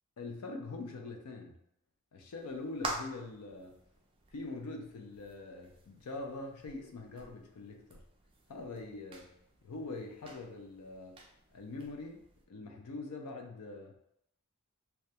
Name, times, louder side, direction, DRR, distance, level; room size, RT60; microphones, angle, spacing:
voice 1, 0.2-1.6 2.1-3.8 4.3-8.0 8.5-11.2 11.5-13.9, left 3 dB, 85° left, 3 dB, 0.4 m, -43 dB
sound 1, 2.3-12.5, right 2 dB, 25° right, 0.3 m, -48 dB
2.2 x 2.2 x 2.7 m, 0.75 s
head